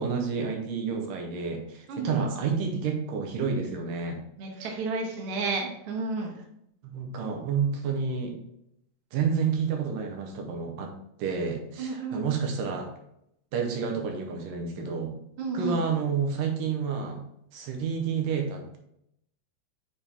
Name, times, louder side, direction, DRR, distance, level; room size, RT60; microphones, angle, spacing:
voice 1, 0.0-4.2 6.8-8.3 9.1-10.9 11.2-12.9 13.5-15.1 15.5-17.2 17.5-18.8, right 6 dB, 80° right, 2 dB, 2.4 m, -29 dB
voice 2, 1.9-2.3 4.4-6.3 11.8-12.3 15.4-15.8, right 3 dB, 60° right, 0 dB, 1.6 m, -31 dB
7.0 x 4.3 x 3.4 m, 0.77 s
omnidirectional pair, 3.9 m